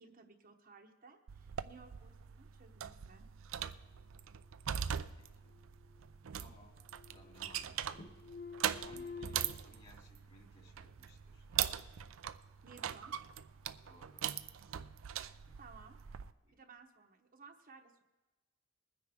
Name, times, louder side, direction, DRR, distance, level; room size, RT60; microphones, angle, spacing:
voice 1, 0.0-3.3 12.6-13.2 15.1-16.0 16.4-18.0, right 5 dB, 45° right, 4 dB, 0.9 m, -58 dB
sound 1, 1.3-16.3, right 9 dB, 70° right, 0.5 m, -41 dB
voice 2, 5.1-5.5 6.4-6.8 7.1-8.0 8.8-11.5 13.8-14.3 15.4-15.6 16.5-16.6, left 1 dB, 30° left, 1 dB, 2.4 m, -62 dB
sound 2, 5.5-6.4 6.7-7.7 7.9-9.5, left 5 dB, 50° left, 1.0 m, -50 dB
22.0 x 9.8 x 3.5 m, 1.2 s
head